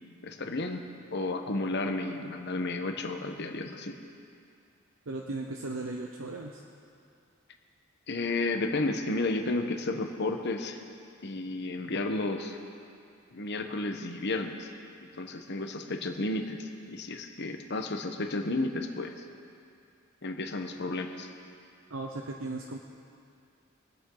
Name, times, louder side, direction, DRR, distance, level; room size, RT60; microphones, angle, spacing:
voice 1, 0.2-0.9 1.1-4.0 8.1-10.8 11.2-12.6 13.3-14.7 15.0-19.1 20.2-21.3, left 2 dB, 55° left, 5 dB, 1.0 m, -32 dB
voice 2, 5.1-6.6 21.9-22.8, right 2 dB, 75° right, 1 dB, 0.8 m, -36 dB
24.0 x 8.6 x 3.9 m, 2.4 s
head